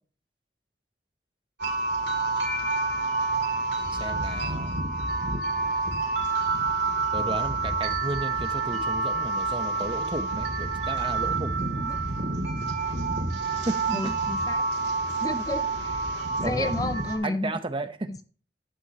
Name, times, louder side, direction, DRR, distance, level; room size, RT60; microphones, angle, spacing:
sound 1, 1.6-17.2, right 3 dB, 75° right, 2.3 m, -28 dB
voice 1, 4.0-4.8 7.1-11.6 13.6-14.2 16.4-16.9 17.2-18.2, right 2 dB, 30° right, 0.8 m, -33 dB
voice 2, 11.6-12.0 13.9-14.6 15.2-16.0 16.4-17.5 18.1-18.2, left 2 dB, 20° left, 0.4 m, -32 dB
11.0 x 9.4 x 2.8 m
head